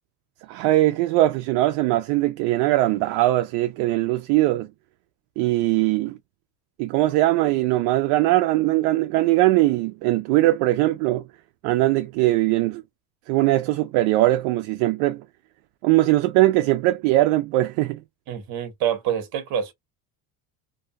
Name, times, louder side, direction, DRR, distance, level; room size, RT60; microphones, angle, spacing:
voice 1, 0.5-4.7 5.4-6.2 6.8-11.2 11.6-12.8 13.3-15.2 15.8-18.0, right 17 dB, 70° right, 0.5 m, -20 dB
voice 2, 18.3-19.7, right 9 dB, 50° right, 1.0 m, -26 dB
2.7 x 2.3 x 2.6 m
cardioid pair, 140°, 44 cm